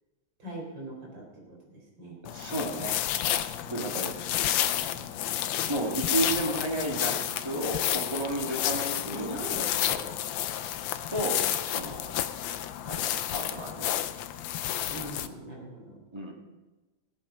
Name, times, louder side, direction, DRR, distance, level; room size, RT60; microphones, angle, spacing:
voice 1, 0.4-2.2 3.6-3.8 4.8-5.0 9.0-10.1 14.9-16.0, right 1 dB, 70° right, -2 dB, 4.7 m, -42 dB
sound 1, 2.2-15.3, left 11 dB, 85° left, 1.4 m, -31 dB
voice 2, 2.2-3.0 3.2-4.2 5.7-9.4 11.1-12.1 12.8-13.9 16.1-16.3, right 1 dB, 15° right, 0 dB, 1.8 m, -33 dB
19.0 x 8.7 x 5.1 m, 1.2 s
omnidirectional pair, 2.1 m